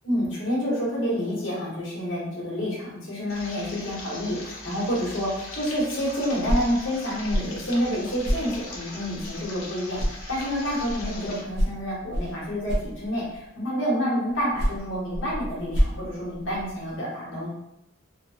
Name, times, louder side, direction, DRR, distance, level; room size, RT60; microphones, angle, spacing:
voice 1, 0.0-17.5, equal, 65° left, -5 dB, 1.0 m, -28 dB
sound 1, 3.3-11.4, left 2 dB, 85° left, 0.7 m, -40 dB
sound 2, 6.2-9.6 9.9-13.5 14.3-17.0, equal, 50° right, 0.5 m, -30 dB
3.0 x 2.0 x 2.7 m, 0.85 s
head